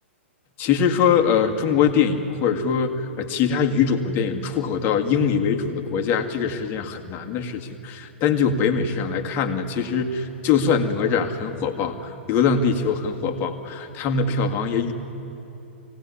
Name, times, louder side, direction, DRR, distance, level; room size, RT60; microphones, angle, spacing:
voice 1, 0.6-14.9, left 6 dB, 35° left, 3 dB, 2.0 m, -22 dB
24.5 x 17.5 x 9.9 m, 2.9 s
hypercardioid pair, 125°, 7 cm